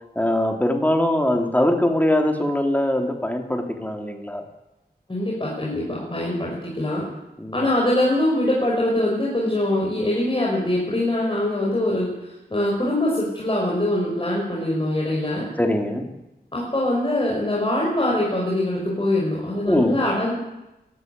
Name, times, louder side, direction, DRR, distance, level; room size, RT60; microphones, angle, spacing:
voice 1, 0.1-4.4 7.4-7.7 8.2-8.3 15.6-16.1 17.1-17.3 19.7-20.1, left 1 dB, 10° left, 4 dB, 3.2 m, -22 dB
voice 2, 5.1-7.0 7.5-12.1 12.5-15.5 16.5-20.3, left 1 dB, 30° left, -4 dB, 5.4 m, -23 dB
22.5 x 13.5 x 9.4 m, 0.97 s
wide cardioid pair, 85°, 17 cm